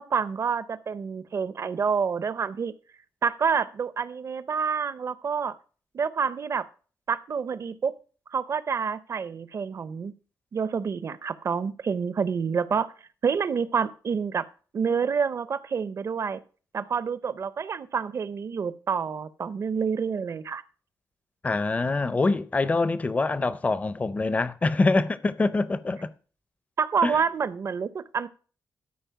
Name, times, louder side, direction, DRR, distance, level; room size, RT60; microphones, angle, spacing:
voice 1, 0.0-2.7 3.2-5.5 5.9-6.7 7.1-8.0 8.3-10.1 10.5-12.9 13.2-14.5 14.7-16.4 16.7-20.6 26.8-28.3, right 6 dB, 40° right, 0.5 m, -28 dB
voice 2, 21.4-26.1 27.0-27.2, left 3 dB, 20° left, 0.5 m, -25 dB
12.5 x 4.9 x 5.7 m
wide cardioid pair, 175°, 7 cm